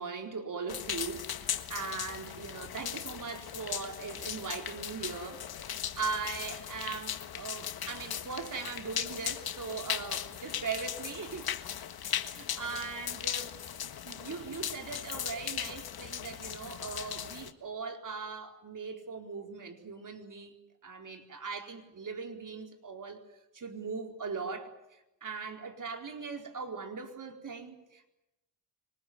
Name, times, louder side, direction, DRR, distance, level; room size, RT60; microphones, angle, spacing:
voice 1, 0.0-5.7 6.0-11.5 12.0-13.5 14.0-20.5 20.8-23.2 23.5-24.7 25.2-28.1, right 5 dB, 45° right, 4 dB, 4.3 m, -40 dB
sound 1, 0.7-17.5, left 9 dB, 60° left, 1.6 m, -38 dB
25.5 x 19.5 x 9.5 m, 0.93 s
supercardioid pair, 60°, 43 cm